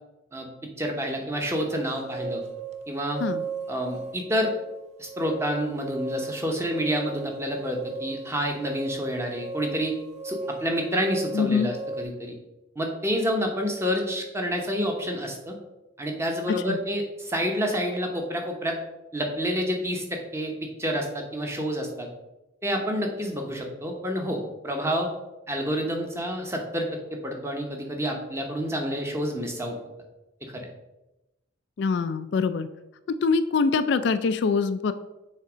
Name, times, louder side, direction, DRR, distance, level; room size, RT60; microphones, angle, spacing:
voice 1, 0.8-2.4 2.9-3.2 3.7-4.5 5.0-9.9 10.2-12.3 12.8-15.6 16.0-18.8 19.1-22.1 22.6-25.1 25.5-29.8 30.4-30.7, equal, 15° right, 2 dB, 0.9 m, -28 dB
sound 1, 1.7-12.0, right 3 dB, 35° right, 0.4 m, -37 dB
voice 2, 11.3-11.7 16.7-16.8 31.8-32.7 33.1-34.9, left 5 dB, 60° left, 11 dB, 0.3 m, -24 dB
6.5 x 3.5 x 5.0 m, 0.97 s
head